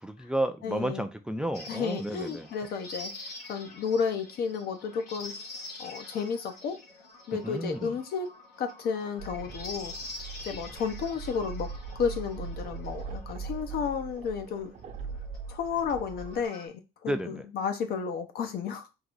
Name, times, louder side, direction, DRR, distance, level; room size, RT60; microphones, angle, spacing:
voice 1, 0.0-2.5 7.4-8.0 17.1-17.4, right 1 dB, 5° right, 0.4 m, -32 dB
voice 2, 0.6-1.0 1.7-3.1 3.5-5.3 5.8-6.8 7.3-8.3 8.6-9.9 10.4-11.7 12.0-14.7 15.5-18.9, left 6 dB, 65° left, 0.9 m, -32 dB
sound 1, 1.5-16.7, left 2 dB, 85° left, 2.0 m, -46 dB
sound 2, 9.2-16.4, right 5 dB, 45° right, 0.7 m, -40 dB
3.9 x 2.5 x 4.6 m
cardioid pair, 110°, 17 cm